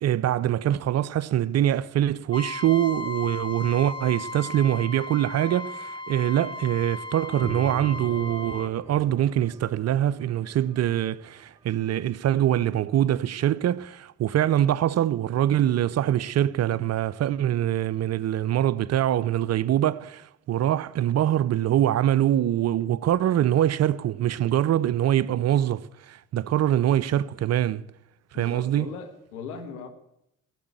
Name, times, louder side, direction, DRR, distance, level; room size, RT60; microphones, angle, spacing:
voice 1, 0.0-27.8 28.3-28.9, right 11 dB, 35° right, 0.5 m, -24 dB
Trumpet, 2.3-8.7, left 3 dB, 10° left, 1.3 m, -36 dB
sound 1, 7.4-12.1, right 2 dB, 10° right, 0.9 m, -42 dB
voice 2, 28.3-29.9, left 5 dB, 75° left, 1.6 m, -38 dB
17.0 x 8.4 x 8.2 m
figure-of-eight pair, 45°, 44 cm